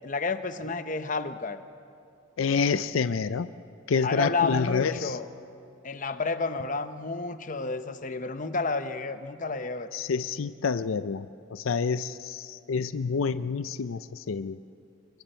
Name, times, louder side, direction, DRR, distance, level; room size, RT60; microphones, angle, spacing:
voice 1, 0.0-1.6 4.0-5.3 5.8-9.9, left 3 dB, 40° left, 10 dB, 0.8 m, -30 dB
voice 2, 2.4-3.5 3.9-5.2 9.9-14.6, left 5 dB, 85° left, 13 dB, 0.5 m, -28 dB
28.5 x 23.5 x 4.5 m, 2.6 s
head